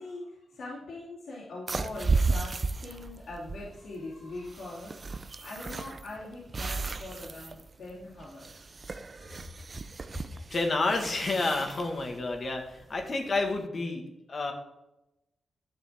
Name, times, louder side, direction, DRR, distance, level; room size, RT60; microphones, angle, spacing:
voice 1, 0.0-8.7 9.2-9.5 10.0-10.4, left 2 dB, 75° left, -8 dB, 3.0 m, -42 dB
sound 1, 1.7-13.6, right 4 dB, 35° right, 0.5 m, -34 dB
voice 2, 10.5-14.5, left 3 dB, 40° left, 3 dB, 1.6 m, -30 dB
11.5 x 6.9 x 3.6 m, 0.92 s
wide cardioid pair, 130°, 0 cm